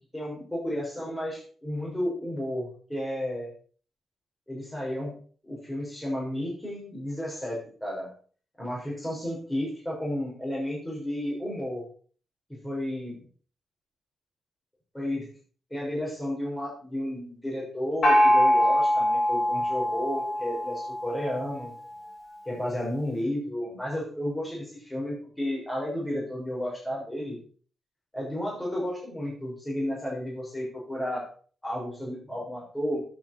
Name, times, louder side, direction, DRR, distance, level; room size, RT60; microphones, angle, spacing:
voice 1, 0.1-3.5 4.5-5.2 5.4-8.1 8.6-11.8 12.5-13.1 14.9-15.3 15.7-21.7 22.4-27.4 28.1-31.2 31.6-33.1, left 1 dB, 10° left, -4 dB, 6.3 m, -32 dB
Gong, 18.0-21.5, left 1 dB, 45° left, 6.5 m, -23 dB
11.5 x 9.0 x 4.7 m, 0.42 s
cardioid pair, 120°, 0 cm